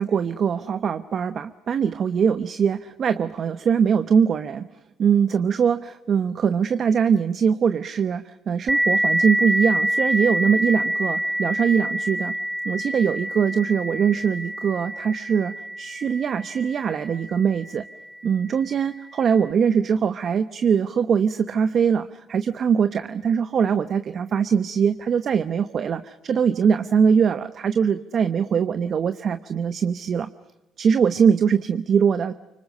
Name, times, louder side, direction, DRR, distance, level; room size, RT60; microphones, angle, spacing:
voice 1, 0.0-4.7 5.0-12.3 12.6-17.8 18.2-30.3 30.8-32.3, right 7 dB, 50° right, 11 dB, 0.9 m, -22 dB
sound 1, 8.7-17.9, right 1 dB, 5° right, 6.9 m, -26 dB
29.0 x 25.0 x 6.4 m, 1.0 s
cardioid pair, 105°, 0 cm